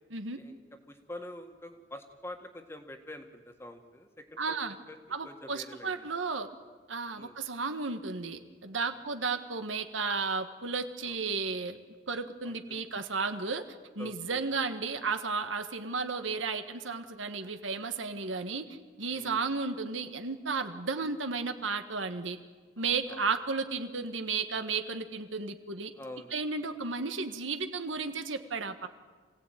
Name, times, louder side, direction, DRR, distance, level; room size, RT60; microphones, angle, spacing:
voice 1, 0.9-4.6 4.9-6.2 7.2-7.4 8.9-9.0 11.0-11.2 12.4-12.9 14.0-14.4 19.1-19.4 22.8-23.3 26.0-26.4 28.8-28.9, left 1 dB, 15° left, 5 dB, 1.8 m, -46 dB
voice 2, 4.4-4.7 5.1-6.5 6.9-11.8 12.1-13.6 13.9-18.6 19.0-22.4 22.8-25.9 26.3-28.9, right 4 dB, 85° right, 8 dB, 1.7 m, -33 dB
26.5 x 17.0 x 9.3 m, 1.4 s
head